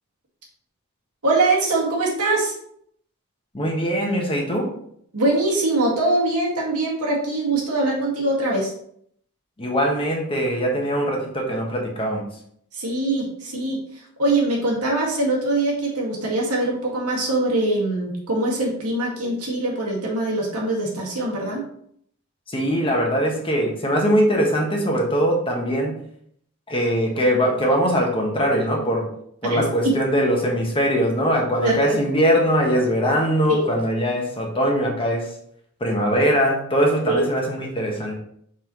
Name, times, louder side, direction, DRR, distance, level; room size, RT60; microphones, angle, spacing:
voice 1, 1.2-2.5 5.1-8.7 12.7-13.8 14.2-21.6 29.5-30.0 31.6-32.0 33.5-33.6 37.1-37.3, right 2 dB, 80° right, -3 dB, 2.1 m, -22 dB
voice 2, 3.5-4.7 9.6-12.3 22.5-26.0 26.7-29.1 29.4-35.3 35.8-38.1, equal, 25° left, 0 dB, 1.3 m, -21 dB
5.6 x 5.5 x 3.1 m, 0.67 s
head